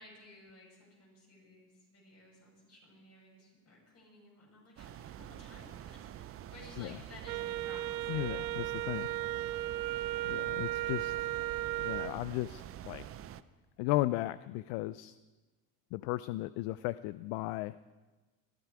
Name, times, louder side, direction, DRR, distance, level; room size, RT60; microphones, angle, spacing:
voice 1, 0.0-9.0 9.4-9.7, left 2 dB, 30° left, -2 dB, 7.1 m, -56 dB
sound 1, 4.8-13.4, right 12 dB, 30° right, 0.5 m, -47 dB
Wind instrument woodwind instrument, 7.3-12.2, right 15 dB, 90° right, 0.6 m, -35 dB
voice 2, 8.1-9.1 10.2-11.3 11.8-13.0 13.8-15.2 15.9-17.8, left 17 dB, 65° left, 16 dB, 0.5 m, -35 dB
20.5 x 14.5 x 4.8 m, 1.2 s
supercardioid pair, 125°, 49 cm